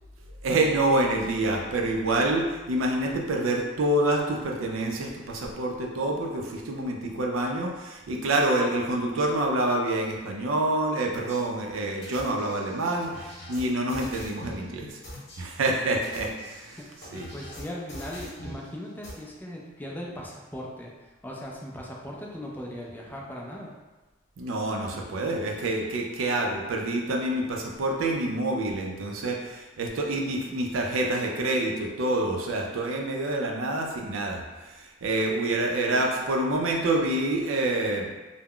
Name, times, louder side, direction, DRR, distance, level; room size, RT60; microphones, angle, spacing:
voice 1, 0.4-15.0 15.4-16.8 17.1-17.3 24.4-38.1, right 2 dB, 80° right, 1 dB, 0.4 m, -27 dB
sound 1, 11.1-11.4 12.0-14.6 15.0-15.4 15.9-18.6 19.0-19.1, equal, 55° left, 0.9 m, -42 dB
voice 2, 17.3-20.9 21.2-23.8, equal, 10° left, -3 dB, 0.3 m, -38 dB
2.3 x 2.0 x 3.6 m, 1.2 s
head